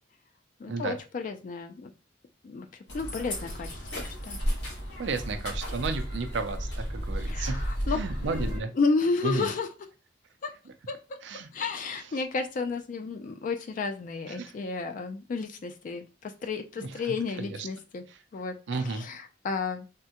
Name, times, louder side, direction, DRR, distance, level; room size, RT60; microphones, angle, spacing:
voice 1, 0.6-1.9 2.4-2.7 2.9-4.4 7.3-9.7 10.4-10.5 10.9-18.0 18.3-19.9, left 4 dB, 45° left, 6 dB, 0.3 m, -32 dB
sound 1, 2.9-8.6, equal, 75° left, 1.2 m, -33 dB
voice 2, 5.0-8.7 9.2-9.5 11.2-11.5 14.4-14.5 16.8-17.7 18.7-19.1, right 4 dB, 70° right, 7 dB, 0.5 m, -33 dB
3.5 x 2.1 x 2.8 m, 0.31 s
head